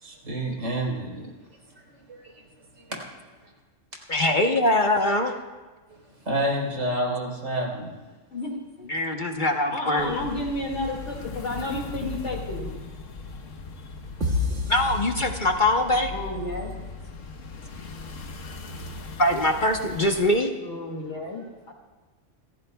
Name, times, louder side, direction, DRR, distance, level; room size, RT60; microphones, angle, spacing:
voice 1, 0.0-1.3 1.9-2.0 6.3-7.9, right 1 dB, 80° right, -1 dB, 4.5 m, -28 dB
voice 2, 4.1-5.4 8.9-10.1 14.7-16.1 19.2-20.5, left 1 dB, 40° left, 3 dB, 1.1 m, -22 dB
voice 3, 9.7-12.8 16.1-16.7 20.6-21.7, left 2 dB, 65° left, 0 dB, 2.5 m, -31 dB
sound 1, 10.0-20.4, left 4 dB, 90° left, 1.5 m, -39 dB
sound 2, 14.2-16.0, left 2 dB, 65° right, 2.1 m, -29 dB
29.0 x 15.0 x 2.3 m, 1.3 s
omnidirectional pair, 1.3 m